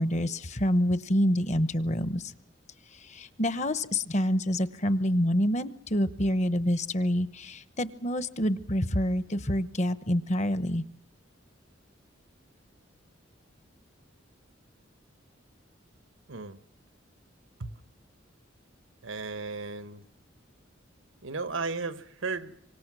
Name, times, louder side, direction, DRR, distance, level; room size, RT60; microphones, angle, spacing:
voice 1, 0.0-2.3 3.1-10.8, equal, 35° left, 1.0 m, -27 dB
voice 2, 16.3-16.6 17.6-17.7 19.0-20.0 21.2-22.6, right 4 dB, 90° right, 1.3 m, -35 dB
27.5 x 25.0 x 6.2 m
head